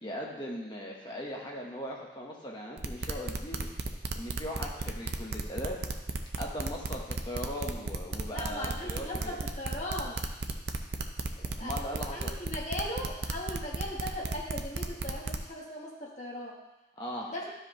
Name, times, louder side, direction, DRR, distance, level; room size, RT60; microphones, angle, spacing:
voice 1, 0.0-3.7 4.1-5.8 6.4-9.4 11.6-12.3 17.0-17.3, equal, 25° left, -2 dB, 1.2 m, -39 dB
sound 1, 2.8-15.5, right 3 dB, 65° right, 0.6 m, -34 dB
voice 2, 8.3-10.2 11.4-16.6 17.2-17.4, left 1 dB, 40° left, -3 dB, 1.5 m, -38 dB
12.0 x 5.0 x 3.2 m, 1.0 s
head